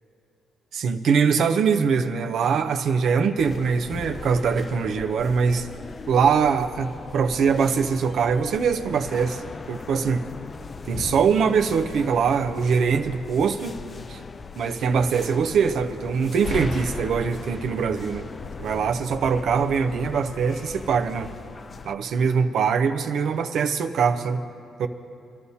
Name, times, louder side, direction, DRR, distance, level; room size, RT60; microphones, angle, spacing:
voice 1, 0.7-5.7 6.1-9.4 9.7-10.2 10.8-13.8 14.1-14.2 14.6-18.2 18.6-21.3 21.8-24.4 24.8-24.9, right 6 dB, 70° right, 7 dB, 0.7 m, -22 dB
sound 1, 3.4-22.0, left 4 dB, 35° left, 0.4 m, -38 dB
23.5 x 13.0 x 2.8 m, 2.7 s
cardioid pair, 90°, 0 cm